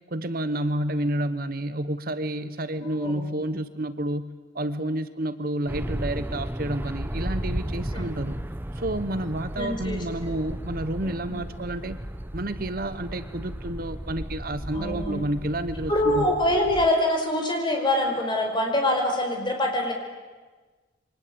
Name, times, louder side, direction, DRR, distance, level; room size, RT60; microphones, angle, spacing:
voice 1, 0.1-8.4 8.8-12.0 12.3-16.3, right 1 dB, 50° right, 12 dB, 1.0 m, -30 dB
sound 1, 5.7-16.9, right 1 dB, 10° right, 0.8 m, -34 dB
voice 2, 9.5-10.0 11.0-11.4 14.7-15.2 15.9-19.9, left 1 dB, 25° left, 2 dB, 5.1 m, -25 dB
28.0 x 24.0 x 8.7 m, 1.4 s
head